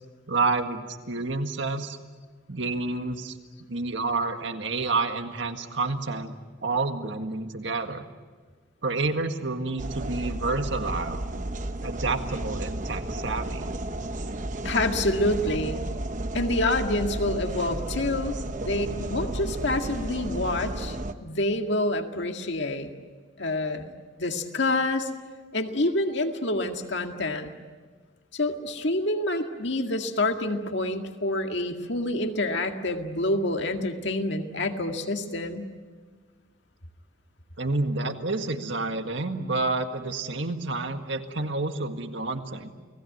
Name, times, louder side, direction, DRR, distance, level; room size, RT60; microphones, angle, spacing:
voice 1, 0.3-2.0 2.5-3.3 3.7-6.3 6.6-8.1 8.8-11.2 11.8-13.7 37.6-42.7, right 3 dB, 65° right, 6 dB, 1.8 m, -29 dB
sound 1, 9.8-21.1, right 1 dB, 40° right, 1.1 m, -33 dB
voice 2, 14.6-15.8 16.3-21.0 21.2-22.9 23.4-23.9 24.2-25.1 25.5-27.5 28.3-35.7, left 2 dB, 60° left, 5 dB, 2.0 m, -27 dB
29.5 x 19.5 x 9.3 m, 1.5 s
head